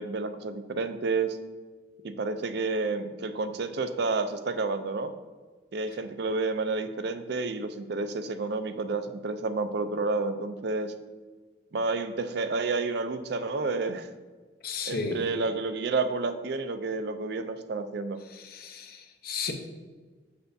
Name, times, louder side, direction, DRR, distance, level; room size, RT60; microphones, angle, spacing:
voice 1, 0.0-1.4 2.0-5.1 5.7-10.9 11.7-14.1 14.9-18.2, right 3 dB, 60° right, 10 dB, 0.4 m, -30 dB
voice 2, 14.6-15.2 18.3-19.5, left 4 dB, 50° left, 5 dB, 0.7 m, -34 dB
6.7 x 6.7 x 2.6 m, 1.4 s
head